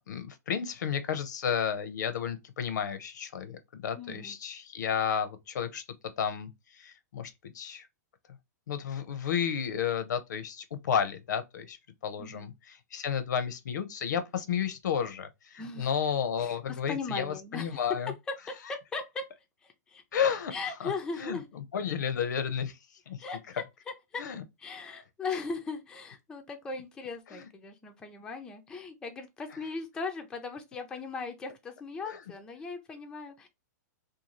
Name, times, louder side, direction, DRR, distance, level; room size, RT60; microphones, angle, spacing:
voice 1, 0.1-5.8 6.2-7.9 8.7-11.8 12.0-18.1 20.1-20.5 20.8-20.9 21.2-22.8 23.1-23.2 24.2-24.4 27.3-27.5 32.1-32.2, left 7 dB, 80° left, 0.6 m, -32 dB
voice 2, 3.9-4.4 12.2-12.5 15.6-15.9 16.4-17.8 18.3-19.3 19.6-20.0 20.5-21.5 23.2-23.6 24.1-24.2 24.6-33.5, left 4 dB, 10° left, 0.3 m, -38 dB
2.6 x 2.3 x 2.9 m
hypercardioid pair, 150°, 10 cm